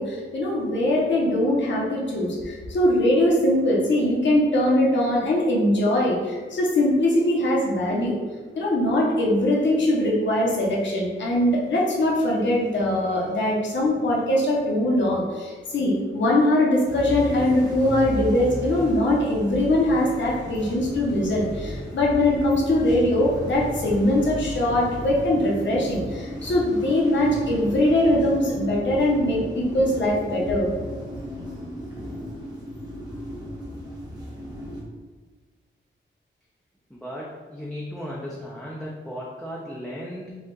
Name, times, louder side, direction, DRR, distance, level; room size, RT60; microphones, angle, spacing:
voice 1, 0.0-8.1 8.5-30.7, left 1 dB, 65° left, -3 dB, 1.0 m, -22 dB
sound 1, 16.9-34.8, equal, 20° right, 1.2 m, -35 dB
voice 2, 36.9-40.4, equal, ahead, -5 dB, 0.5 m, -35 dB
5.1 x 2.4 x 3.8 m, 1.4 s
wide cardioid pair, 150°, 20 cm